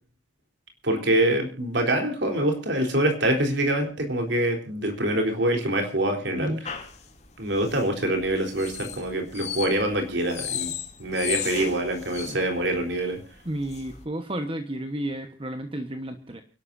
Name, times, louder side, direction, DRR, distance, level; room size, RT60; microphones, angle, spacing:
voice 1, 0.8-6.7 7.4-10.7 11.0-13.2, right 1 dB, 60° right, 4 dB, 4.0 m, -25 dB
voice 2, 6.4-6.7 12.2-12.5 13.4-16.4, right 1 dB, 30° right, 7 dB, 1.3 m, -32 dB
sound 1, 6.6-14.0, left 8 dB, 35° left, 2.8 m, -36 dB
30.0 x 12.0 x 2.7 m, 0.34 s
head